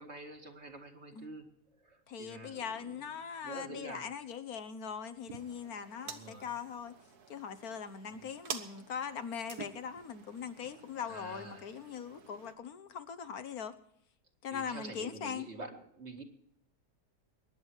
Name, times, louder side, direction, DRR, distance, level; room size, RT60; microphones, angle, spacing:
voice 1, 0.0-1.5 1.8-3.1 3.4-4.1 6.0-6.5 8.1-8.2 11.0-11.6 14.5-16.2, right 2 dB, 40° right, 4 dB, 2.4 m, -47 dB
voice 2, 2.1-6.9 7.3-13.7 14.4-15.5, left 7 dB, 65° left, 11 dB, 1.6 m, -41 dB
sound 1, 5.3-12.5, right 7 dB, 70° right, 1.8 m, -49 dB
22.5 x 11.0 x 4.6 m, 0.71 s
omnidirectional pair, 1.7 m